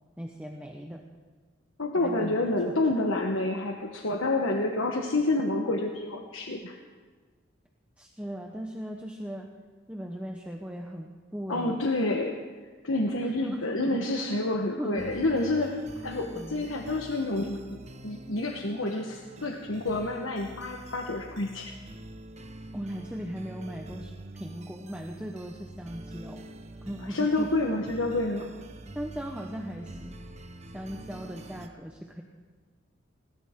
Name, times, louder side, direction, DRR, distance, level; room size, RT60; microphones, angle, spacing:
voice 1, 0.2-1.0 1.9-3.0 8.0-9.5 9.9-11.9 13.2-14.0 14.8-15.1 16.4-16.7 22.7-26.4 26.8-27.5 28.9-30.2 30.7-32.2, equal, 5° right, 1 dB, 0.9 m, -38 dB
voice 2, 1.8-6.7 11.5-12.4 12.8-21.8 27.1-28.5, left 2 dB, 80° left, 2 dB, 1.3 m, -28 dB
sound 1, 15.0-31.7, right 1 dB, 35° right, 1.0 m, -46 dB
20.5 x 18.5 x 3.8 m, 1.5 s
head